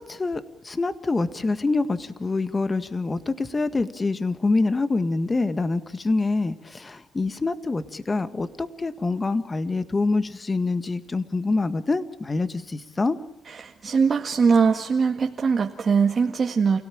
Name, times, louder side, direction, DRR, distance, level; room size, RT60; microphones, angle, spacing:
voice 1, 0.0-13.2, left 3 dB, 25° left, 11 dB, 1.8 m, -26 dB
voice 2, 13.5-16.8, right 5 dB, 45° right, 2 dB, 2.0 m, -21 dB
29.0 x 17.5 x 8.9 m, 0.91 s
cardioid pair, 90°, 0 cm